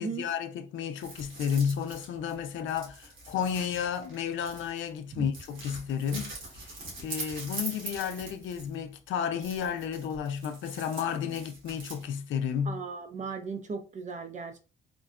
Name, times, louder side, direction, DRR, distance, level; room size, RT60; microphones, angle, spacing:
voice 1, 0.0-12.8, left 8 dB, 75° left, 0.5 m, -32 dB
sound 1, 1.0-4.9 5.3-8.8 9.3-12.0, right 2 dB, 75° right, 1.6 m, -43 dB
voice 2, 12.7-14.6, right 4 dB, 40° right, 0.6 m, -36 dB
3.7 x 2.1 x 2.4 m
cardioid pair, 90°, 20 cm